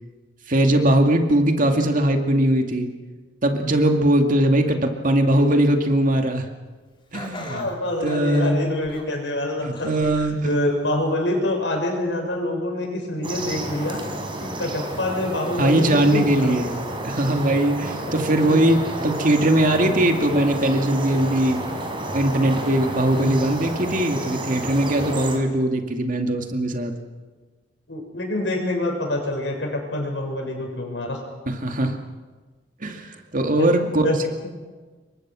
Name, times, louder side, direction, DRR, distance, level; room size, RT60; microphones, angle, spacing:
voice 1, 0.5-2.9 3.4-6.5 7.1-7.7 8.0-8.6 9.6-10.5 15.6-21.6 22.1-26.9 31.5-32.0 32.8-34.0, right 1 dB, 50° right, 4 dB, 2.4 m, -20 dB
Laughter, 7.1-9.2 9.7-10.4 10.8-10.9 11.9-12.0, left 2 dB, 30° left, 3.8 m, -40 dB
voice 2, 7.5-10.1 10.4-14.0 14.4-16.6 18.1-18.6 23.1-23.4 27.9-31.2 33.6-33.7 34.0-34.2, left 1 dB, 80° left, 2 dB, 6.9 m, -26 dB
sound 1, 13.2-25.4, right 1 dB, 30° right, 4.2 m, -31 dB
27.5 x 23.5 x 6.3 m, 1.3 s
head